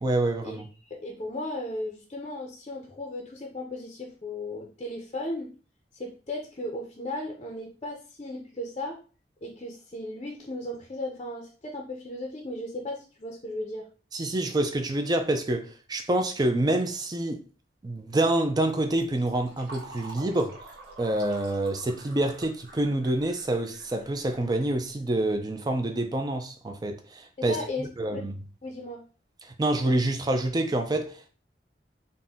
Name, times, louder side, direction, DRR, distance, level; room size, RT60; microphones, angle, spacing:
voice 1, 0.0-0.7 14.1-17.4 17.8-20.6 21.0-28.4 29.4-31.3, right 1 dB, 25° right, 0.4 m, -27 dB
voice 2, 0.8-5.5 5.9-9.0 9.4-13.9 27.4-28.3 28.6-29.0, left 1 dB, 35° left, 0.6 m, -36 dB
Fill (with liquid), 18.9-25.3, right 2 dB, 70° right, 1.2 m, -48 dB
4.1 x 2.2 x 3.5 m
head